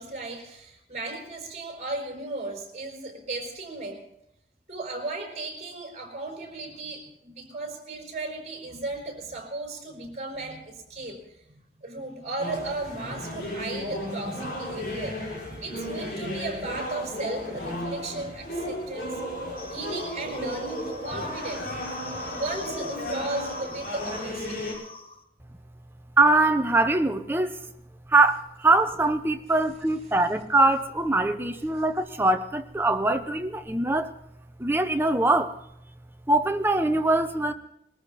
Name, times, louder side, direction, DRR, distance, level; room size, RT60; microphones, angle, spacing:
voice 1, 0.0-4.0 4.7-11.4 11.8-19.2 19.7-24.7, right 2 dB, 40° right, 1 dB, 5.0 m, -35 dB
sound 1, 12.4-24.7, equal, 55° left, 6.5 m, -34 dB
sound 2, 19.6-25.2, left 3 dB, 30° left, 1.3 m, -44 dB
voice 2, 26.2-27.6 28.1-34.1 34.6-35.5 36.3-37.5, right 2 dB, 10° right, 7 dB, 0.9 m, -22 dB
22.0 x 14.0 x 4.2 m, 0.78 s
head